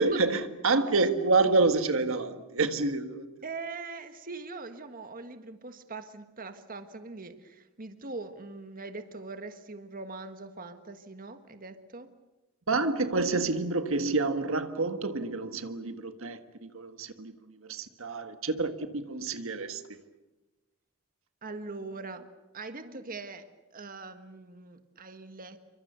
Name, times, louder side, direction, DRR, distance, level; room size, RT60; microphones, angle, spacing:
voice 1, 0.0-3.3 12.7-19.8, right 3 dB, 65° right, 1.6 m, -28 dB
voice 2, 0.7-1.1 3.4-12.1 21.4-22.3 22.5-23.4 23.7-25.6, right 3 dB, 40° right, 1.6 m, -42 dB
29.0 x 24.5 x 6.9 m
head